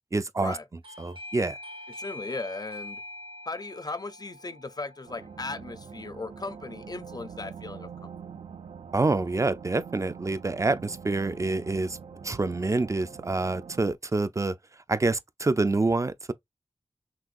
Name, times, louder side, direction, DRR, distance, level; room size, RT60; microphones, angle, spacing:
voice 1, 0.1-0.6 1.0-1.6 8.9-12.0 12.2-14.6 14.9-16.3, right 3 dB, 30° right, 0.4 m, -27 dB
Doorbell, 0.8-7.3, left 1 dB, 55° right, 0.9 m, -45 dB
voice 2, 2.0-3.0 3.5-8.1, left 3 dB, 40° left, 0.6 m, -37 dB
sound 1, 5.1-14.0, right 6 dB, 85° right, 0.5 m, -44 dB
6.0 x 2.3 x 2.5 m
wide cardioid pair, 60°, 11 cm